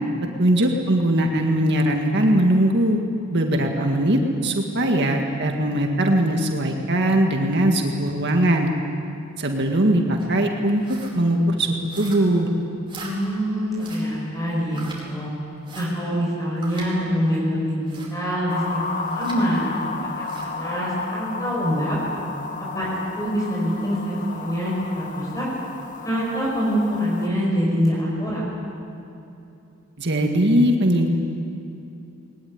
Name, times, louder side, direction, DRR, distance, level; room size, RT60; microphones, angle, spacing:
voice 1, 0.4-3.0 3.3-8.7 9.4-12.5 30.0-31.1, right 1 dB, 55° right, 2 dB, 1.9 m, -20 dB
sound 1, 10.2-10.4 10.8-11.2 11.9-12.4 12.9-13.2 13.8-14.1 14.7-15.0 15.6-15.9 16.6-16.9 17.9-18.2 19.0-19.4 20.2-20.5, right 4 dB, 25° right, 4.6 m, -40 dB
voice 2, 13.0-15.3 15.8-22.0 22.6-25.5 26.0-28.5, equal, 15° left, -4 dB, 5.3 m, -25 dB
sound 2, 18.5-27.3, left 4 dB, 40° left, 1.2 m, -33 dB
20.5 x 20.5 x 9.7 m, 2.8 s
head